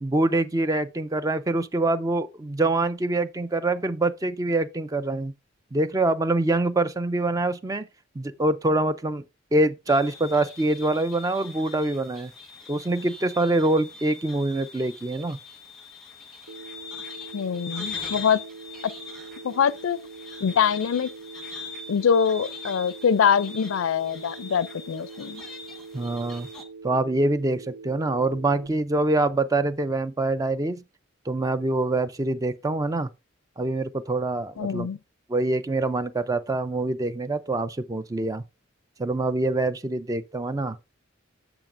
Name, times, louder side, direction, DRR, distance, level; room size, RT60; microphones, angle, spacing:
voice 1, 0.0-5.3 5.7-7.9 8.2-9.2 9.5-12.3 12.7-15.4 25.9-26.5 26.8-30.8 31.3-33.1 33.6-34.9 35.3-38.4 39.0-40.8, right 2 dB, 15° right, 0.4 m, -25 dB
sound 1, 9.9-26.6, left 4 dB, ahead, 1.2 m, -42 dB
Telephone, 16.5-28.7, right 4 dB, 80° right, 0.5 m, -43 dB
voice 2, 17.3-18.4 19.4-20.0 20.4-21.1 21.9-25.4 34.6-35.0, left 7 dB, 85° left, 0.4 m, -23 dB
8.9 x 7.2 x 2.5 m
head